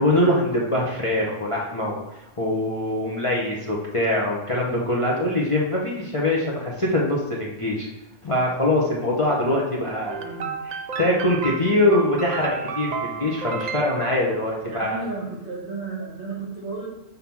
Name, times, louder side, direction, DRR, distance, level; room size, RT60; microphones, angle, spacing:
voice 1, 0.0-2.0 2.4-7.9 8.2-10.1 10.6-15.0, left 1 dB, 30° left, -4 dB, 0.9 m, -23 dB
voice 2, 10.1-10.5 14.7-16.9, right 3 dB, 45° right, -3 dB, 1.8 m, -33 dB
sound 1, 10.1-14.7, right 5 dB, 80° right, 0.3 m, -32 dB
5.5 x 3.7 x 6.0 m, 0.90 s
omnidirectional pair, 1.3 m